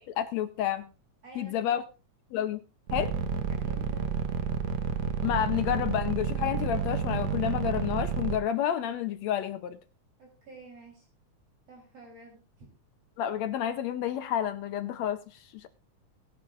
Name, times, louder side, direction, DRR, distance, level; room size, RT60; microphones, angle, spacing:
voice 1, 0.1-0.9 1.4-1.8 2.3-2.6 2.9-3.1 5.2-9.8 13.2-15.2 15.5-15.7, left 10 dB, 75° left, 1.8 m, -30 dB
voice 2, 1.2-1.7 3.5-4.4 10.2-11.1 11.7-12.7, right 3 dB, 50° right, 4.6 m, -50 dB
sound 1, 2.9-8.4, right 6 dB, 70° right, 2.2 m, -30 dB
20.0 x 10.5 x 2.5 m
omnidirectional pair, 3.5 m